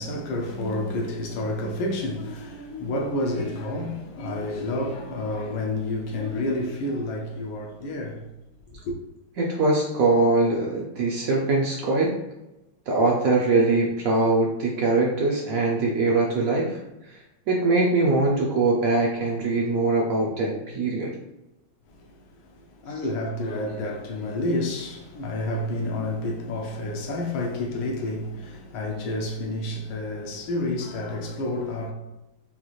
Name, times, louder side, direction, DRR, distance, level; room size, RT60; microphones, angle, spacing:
voice 1, 0.0-8.3 8.7-8.9 22.0-31.9, left 1 dB, 80° left, 1.5 m, -29 dB
voice 2, 9.4-12.1 12.9-16.8 17.1-17.2 17.5-21.1, right 3 dB, 85° right, 0.7 m, -22 dB
5.4 x 3.0 x 2.4 m
omnidirectional pair, 2.2 m